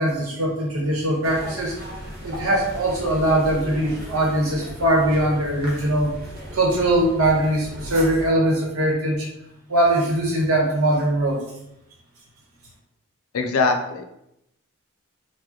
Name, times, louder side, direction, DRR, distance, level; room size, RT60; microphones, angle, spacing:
voice 1, 0.0-1.8 2.2-6.1 6.5-9.3 9.7-11.4, right 1 dB, 85° right, -1 dB, 1.0 m, -21 dB
sound 1, 1.2-8.3, equal, 45° right, 1.0 m, -37 dB
voice 2, 13.3-14.0, left 4 dB, 85° left, 4 dB, 0.5 m, -22 dB
4.6 x 2.2 x 2.8 m, 0.82 s
head